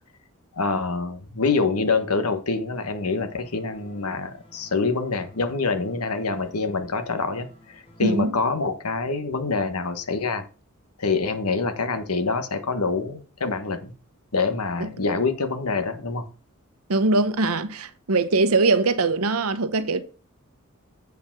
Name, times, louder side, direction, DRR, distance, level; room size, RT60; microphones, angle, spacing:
voice 1, 0.5-10.4 11.0-13.9 14.3-16.3, left 4 dB, 90° left, 1.2 m, -26 dB
sound 1, 2.7-8.3, left 1 dB, 25° left, 1.8 m, -53 dB
voice 2, 8.0-8.4 14.8-14.9 16.9-20.0, right 3 dB, 75° right, 0.9 m, -22 dB
8.2 x 4.7 x 6.0 m
head